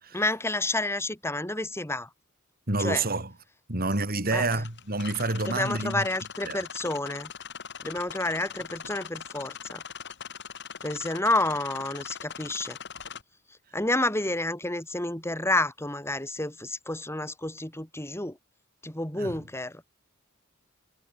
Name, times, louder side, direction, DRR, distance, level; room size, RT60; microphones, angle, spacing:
voice 1, 0.1-2.1 2.8-3.0 4.3-4.6 5.5-7.3 7.8-9.8 10.8-12.8 13.7-18.4 18.8-19.8, left 2 dB, 15° left, 5.9 m, -29 dB
voice 2, 2.7-3.3 3.7-6.0 6.4-6.6 19.2-19.4, right 2 dB, 45° right, 5.2 m, -28 dB
sound 1, 4.4-13.2, left 7 dB, 60° left, 3.8 m, -41 dB
head